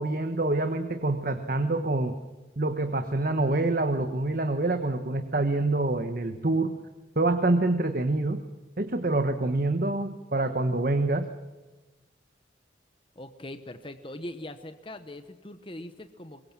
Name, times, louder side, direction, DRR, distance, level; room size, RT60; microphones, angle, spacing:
voice 1, 0.0-2.1 2.6-6.8 7.2-8.4 8.8-11.3, right 2 dB, 50° right, 7 dB, 1.3 m, -26 dB
voice 2, 13.2-16.4, left 1 dB, 30° left, 9 dB, 1.0 m, -41 dB
23.5 x 22.0 x 7.5 m, 1.2 s
head